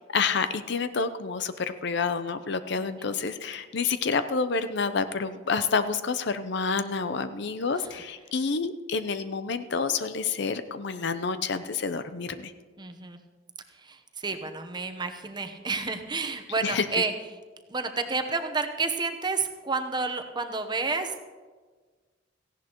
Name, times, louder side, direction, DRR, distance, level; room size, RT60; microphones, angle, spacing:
voice 1, 0.1-12.5 16.6-16.8, left 5 dB, 65° left, 11 dB, 0.6 m, -28 dB
voice 2, 2.7-3.1 7.8-7.9 12.8-13.2 13.7-17.1 17.7-21.2, right 4 dB, 25° right, 6 dB, 0.9 m, -30 dB
17.5 x 15.5 x 3.0 m, 1.4 s
head